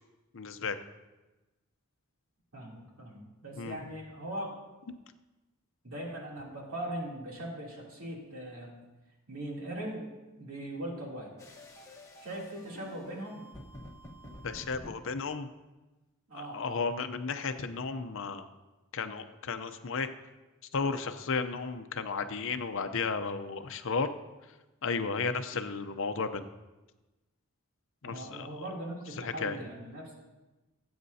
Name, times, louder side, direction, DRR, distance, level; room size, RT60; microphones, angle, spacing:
voice 1, 0.3-0.8 3.5-3.8 14.4-15.5 16.3-18.5 18.9-20.1 20.7-24.1 24.8-26.5 28.0-28.5 29.2-29.6, left 4 dB, 60° left, 9 dB, 0.6 m, -33 dB
voice 2, 2.5-4.6 5.8-8.8 9.3-10.1 10.4-11.5 12.2-13.5 16.3-16.8 28.0-30.2, right 1 dB, 70° right, -3 dB, 3.0 m, -40 dB
sound 1, 11.4-14.9, left 1 dB, 15° left, 1.2 m, -49 dB
19.5 x 8.7 x 2.8 m, 1.1 s
head